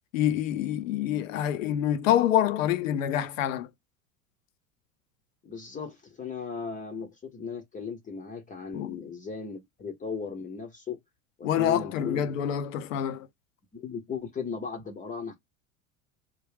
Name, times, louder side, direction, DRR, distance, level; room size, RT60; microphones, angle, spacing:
voice 1, 0.1-3.7 8.7-9.0 11.4-13.3, left 10 dB, 65° left, 0.7 m, -26 dB
voice 2, 5.4-11.0 11.4-12.3 13.7-15.4, left 5 dB, 20° left, 0.8 m, -37 dB
3.6 x 2.3 x 3.2 m
figure-of-eight pair, 80°, 43 cm